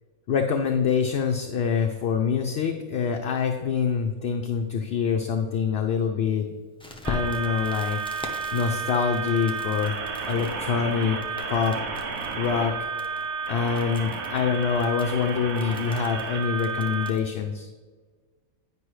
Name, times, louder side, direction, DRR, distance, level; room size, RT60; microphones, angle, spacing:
voice 1, 0.3-6.5 7.0-8.0 8.5-10.0 10.3-11.2 11.5-11.7 12.3-12.7 13.5-17.7, left 6 dB, 60° left, 4 dB, 0.7 m, -25 dB
Crackle, 6.8-17.3, left 2 dB, 5° left, 0.5 m, -42 dB
sound 1, 7.0-17.1, right 5 dB, 85° right, 1.3 m, -32 dB
9.8 x 5.3 x 3.1 m, 1.4 s
omnidirectional pair, 1.4 m